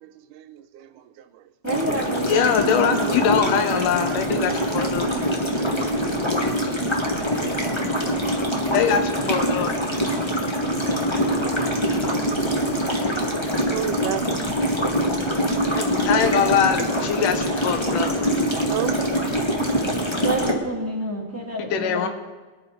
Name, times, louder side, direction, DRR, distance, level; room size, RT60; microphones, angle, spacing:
voice 1, 0.0-1.4 11.7-13.4 13.7-14.3 14.6-14.8 18.0-18.1 18.5-19.8, right 11 dB, 85° right, 2.2 m, -36 dB
voice 2, 1.6-3.9 16.1-17.4 20.2-22.1, right 1 dB, 5° right, 1.9 m, -30 dB
sound 1, 1.7-20.5, equal, 15° left, 0.9 m, -24 dB
voice 3, 2.3-5.1 8.7-9.7 15.7-18.2 21.6-22.1, left 7 dB, 90° left, 2.7 m, -23 dB
23.0 x 11.0 x 4.0 m
omnidirectional pair, 3.6 m